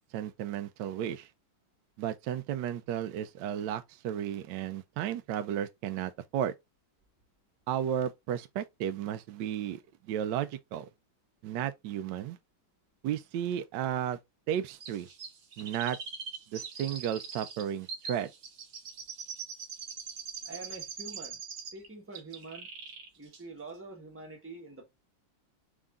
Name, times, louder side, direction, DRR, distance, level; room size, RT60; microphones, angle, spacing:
voice 1, 0.1-1.3 2.0-6.5 7.7-10.9 11.4-12.4 13.0-14.2 14.5-15.1 15.6-16.0 16.5-18.3, right 10 dB, 75° right, 1.1 m, -33 dB
Chirp tweet, 14.8-21.9 22.1-23.1 23.3-23.4, right 6 dB, 50° right, 0.9 m, -42 dB
voice 2, 20.4-21.4 21.7-22.7 23.2-24.8, right 3 dB, 10° right, 0.8 m, -45 dB
4.7 x 2.6 x 3.5 m
omnidirectional pair, 2.3 m